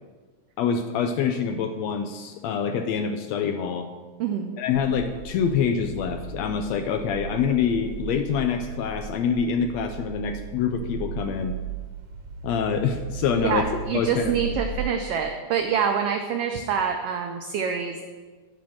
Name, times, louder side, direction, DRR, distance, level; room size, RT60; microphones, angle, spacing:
voice 1, 0.6-3.9 4.6-11.5 12.4-13.7 13.9-14.6, left 7 dB, 80° left, 7 dB, 1.6 m, -26 dB
voice 2, 4.2-4.6 13.4-18.0, right 7 dB, 85° right, 4 dB, 1.3 m, -26 dB
sound 1, 4.7-14.8, right 6 dB, 70° right, 1.9 m, -36 dB
10.0 x 5.3 x 6.3 m, 1.4 s
omnidirectional pair, 3.4 m